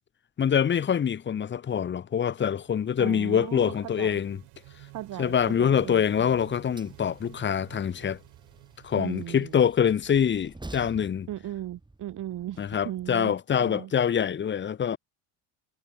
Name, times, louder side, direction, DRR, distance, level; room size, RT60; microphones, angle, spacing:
voice 1, 0.4-4.4 5.2-8.2 8.8-11.3 12.6-15.0, left 8 dB, 30° left, 0.9 m, -25 dB
sound 1, 2.1-10.8, right 29 dB, 80° right, 6.6 m, -53 dB
voice 2, 3.0-4.2 4.9-6.4 8.9-9.6 11.3-13.9, right 13 dB, 50° right, 1.8 m, -37 dB
Train, 5.4-13.1, right 2 dB, 10° right, 4.7 m, -50 dB
supercardioid pair, 95°, 39 cm